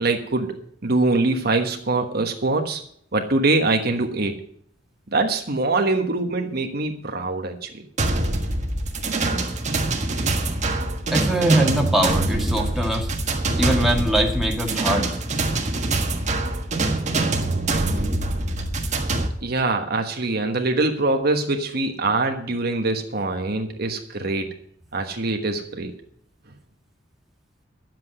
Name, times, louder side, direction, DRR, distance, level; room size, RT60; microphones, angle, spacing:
voice 1, 0.0-2.8 3.1-4.4 5.1-7.9 19.4-24.6 24.9-25.9, right 2 dB, 55° right, 4 dB, 1.3 m, -23 dB
sound 1, 8.0-19.3, right 2 dB, 40° right, 1.5 m, -24 dB
voice 2, 11.1-13.1 13.6-15.1, right 1 dB, ahead, 0 dB, 1.8 m, -22 dB
10.5 x 7.8 x 7.7 m, 0.63 s
head